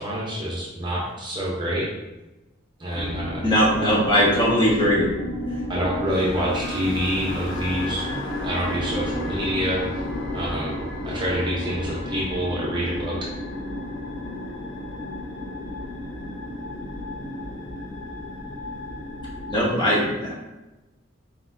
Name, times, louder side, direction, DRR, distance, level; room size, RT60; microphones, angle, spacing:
voice 1, 0.0-1.9 2.8-3.4 3.8-3.9 5.7-8.1 8.4-10.0 10.3-10.8 11.0-13.2, equal, 25° right, -5 dB, 0.8 m, -27 dB
sound 1, 2.9-19.6, left 1 dB, 85° left, 0.8 m, -32 dB
voice 2, 3.4-5.1 19.5-20.3, equal, 25° left, -5 dB, 1.2 m, -20 dB
4.4 x 3.9 x 2.7 m, 1.0 s
head